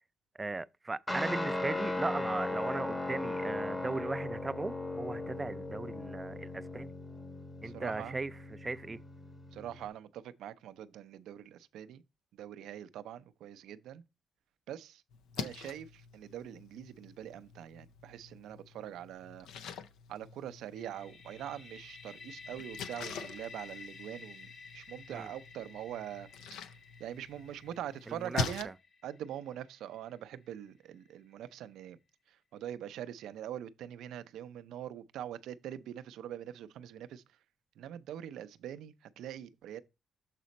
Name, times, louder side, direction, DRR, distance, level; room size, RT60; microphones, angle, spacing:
voice 1, 0.4-6.9 7.6-9.0 25.1-25.3 28.1-28.7, right 3 dB, 20° right, 0.3 m, -37 dB
Guitar, 1.1-9.9, left 2 dB, 15° left, 0.9 m, -38 dB
voice 2, 7.7-8.2 9.5-12.0 12.3-14.0 14.7-15.0 15.4-19.5 20.1-24.5 24.7-26.3 27.0-28.7 29.0-32.0 32.5-37.2 37.8-39.8, right 11 dB, 80° right, 0.5 m, -43 dB
Splash splatter, 15.1-28.6, left 6 dB, 90° left, 0.5 m, -45 dB
sound 1, 20.8-30.5, left 4 dB, 60° left, 1.8 m, -52 dB
7.4 x 4.2 x 4.0 m
cardioid pair, 90°, 0 cm